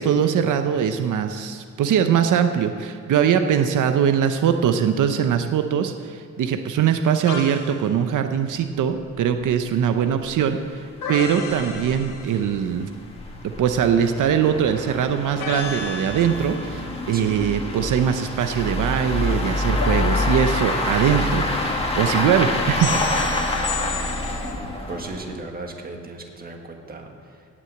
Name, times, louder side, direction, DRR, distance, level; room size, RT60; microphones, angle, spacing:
voice 1, 0.0-12.9 13.4-23.3, right 8 dB, 85° right, 7 dB, 0.7 m, -22 dB
sound 1, 7.3-7.8 11.0-12.7 15.4-16.8 19.8-21.3 22.8-24.5, left 5 dB, 80° left, 1.6 m, -33 dB
sound 2, 9.0-9.1 9.3-9.4 9.9-10.0 10.3-10.4 11.0-25.4, left 1 dB, 20° left, 1.6 m, -27 dB
voice 2, 24.4-27.5, right 3 dB, 30° right, 2 dB, 1.6 m, -37 dB
17.5 x 6.2 x 7.9 m, 2.3 s
wide cardioid pair, 145°, 30 cm